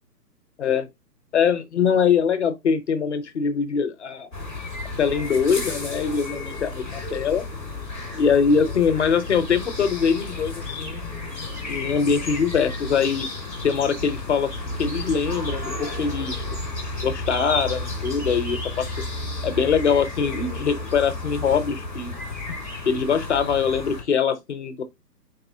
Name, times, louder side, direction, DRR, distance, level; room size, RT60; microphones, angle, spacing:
voice 1, 0.6-0.9 1.3-4.3 5.0-7.5 8.2-11.0 11.6-13.3 13.6-14.5 14.8-16.5 17.0-19.0 19.4-22.1 22.8-24.8, left 6 dB, 45° left, 0.7 m, -23 dB
sound 1, 4.3-24.0, left 2 dB, 10° right, 0.7 m, -32 dB
4.2 x 3.9 x 2.6 m
hypercardioid pair, 160°, 49 cm